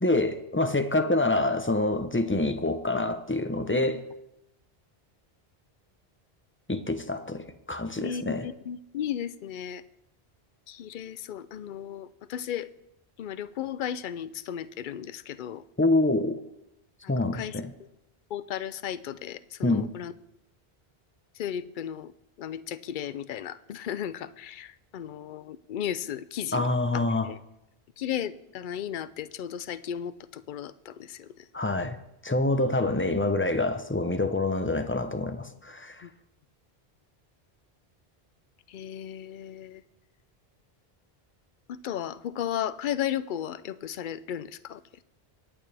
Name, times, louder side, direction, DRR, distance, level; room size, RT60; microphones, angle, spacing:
voice 1, 0.0-4.0 6.7-8.5 15.8-16.4 17.1-17.7 19.6-19.9 26.5-27.3 31.5-32.0 32.2-36.1, left 2 dB, 15° left, 9 dB, 0.6 m, -26 dB
voice 2, 8.0-9.8 10.7-12.7 13.2-15.6 17.0-17.6 18.3-20.1 21.4-22.1 22.4-26.7 26.9-27.4 28.0-31.5 36.0-36.1 38.7-39.8 41.7-44.8, left 9 dB, 60° left, 15 dB, 0.7 m, -35 dB
24.5 x 9.0 x 3.4 m, 0.89 s
omnidirectional pair, 1.0 m